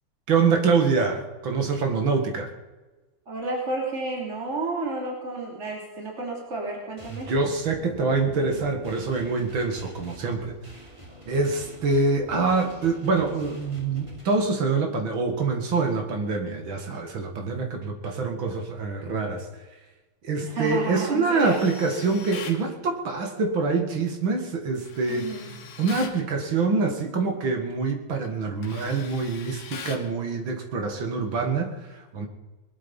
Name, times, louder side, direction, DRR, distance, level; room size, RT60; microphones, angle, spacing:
voice 1, 0.3-2.5 7.3-10.5 11.3-19.6 20.2-25.3 25.8-32.3, right 4 dB, 75° right, 4 dB, 2.8 m, -25 dB
voice 2, 3.3-7.3 20.4-21.6 25.1-25.5, right 2 dB, 35° right, -1 dB, 3.3 m, -31 dB
sound 1, 7.0-14.3, right 1 dB, 15° right, 3.2 m, -46 dB
Tools, 21.4-22.6 24.8-26.2 27.7-27.9 28.2-30.1, left 6 dB, 70° left, 2.2 m, -41 dB
21.0 x 12.0 x 5.6 m, 1.2 s
omnidirectional pair, 2.2 m